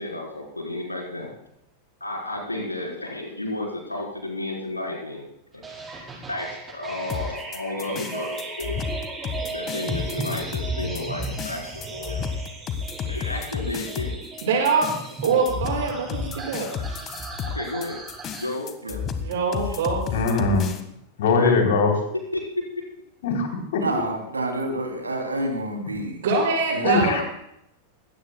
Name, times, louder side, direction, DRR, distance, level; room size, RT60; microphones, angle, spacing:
voice 1, 0.0-1.3 2.0-5.3 5.5-5.8 6.3-8.8 9.5-12.2 13.1-14.1 15.2-15.3 16.7-16.9 17.5-18.0 18.4-18.7 21.3-21.5 22.3-22.4, left 2 dB, 85° left, -2 dB, 4.1 m, -32 dB
sound 1, 5.6-18.5, right 2 dB, 15° right, 5.2 m, -36 dB
sound 2, 7.1-20.8, left 6 dB, 30° left, 1.5 m, -32 dB
voice 2, 14.4-14.9 15.2-16.7 19.2-20.2 26.2-27.2, right 4 dB, 55° right, -1 dB, 6.0 m, -23 dB
voice 3, 20.1-20.7 21.2-21.9 23.2-23.3 26.8-27.2, left 4 dB, 55° left, 3 dB, 3.4 m, -20 dB
voice 4, 23.8-26.2 26.7-27.2, right 1 dB, 80° right, 3 dB, 2.9 m, -29 dB
22.0 x 17.5 x 2.3 m, 0.78 s
figure-of-eight pair, 90°, 0 cm